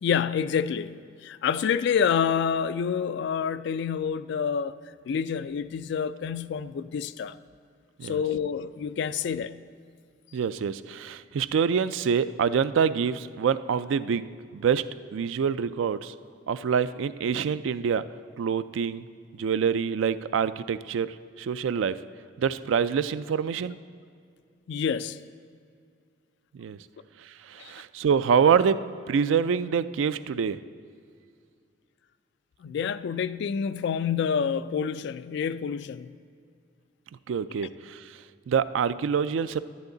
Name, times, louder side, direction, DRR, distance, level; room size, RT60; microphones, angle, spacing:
voice 1, 0.0-0.9 1.2-4.8 5.0-7.4 8.0-9.6 24.7-25.2 27.6-27.7 32.6-36.1, left 7 dB, 65° left, 0.3 m, -28 dB
voice 2, 10.3-10.7 11.0-14.2 14.6-14.8 15.1-16.0 16.5-18.0 18.4-19.0 19.4-21.1 21.5-21.9 22.4-23.8 26.6-26.8 28.0-28.8 29.1-30.6 37.3-37.7 38.5-39.6, right 7 dB, 85° right, 0.3 m, -25 dB
10.5 x 10.5 x 3.9 m
head